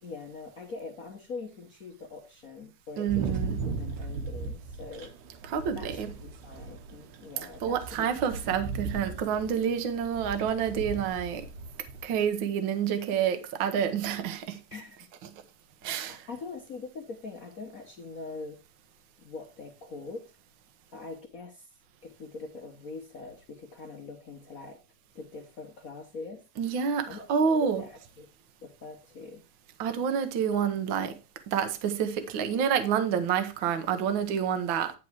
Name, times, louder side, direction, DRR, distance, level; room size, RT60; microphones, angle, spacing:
voice 1, 0.0-5.1 5.7-8.1 14.7-15.1 15.8-18.6 19.2-20.3 20.9-21.7 22.0-24.8 25.1-26.4 26.8-28.3 28.6-29.4, left 3 dB, 70° left, 0.8 m, -43 dB
voice 2, 3.0-3.6 5.5-6.1 7.6-11.4 12.0-14.6 15.8-16.2 26.6-27.8 29.8-31.2 31.5-34.9, right 7 dB, 60° right, 1.3 m, -28 dB
sound 1, 3.1-12.3, right 4 dB, 85° right, 2.4 m, -37 dB
9.9 x 4.7 x 4.7 m
omnidirectional pair, 3.4 m